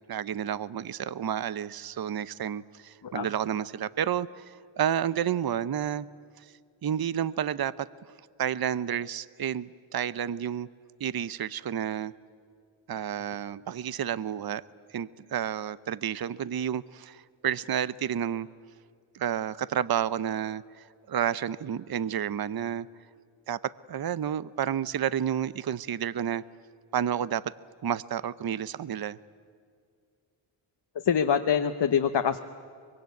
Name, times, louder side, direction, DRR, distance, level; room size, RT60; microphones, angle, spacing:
voice 1, 0.1-6.1 6.8-7.9 8.4-10.7 11.0-12.1 12.9-14.6 14.9-18.5 19.1-22.9 23.5-26.4 26.9-27.5 27.8-29.2, right 9 dB, 45° right, 18 dB, 0.7 m, -30 dB
voice 2, 31.0-32.4, left 7 dB, 55° left, 6 dB, 1.1 m, -24 dB
24.5 x 22.5 x 9.4 m, 2.2 s
cardioid pair, 90°, 50 cm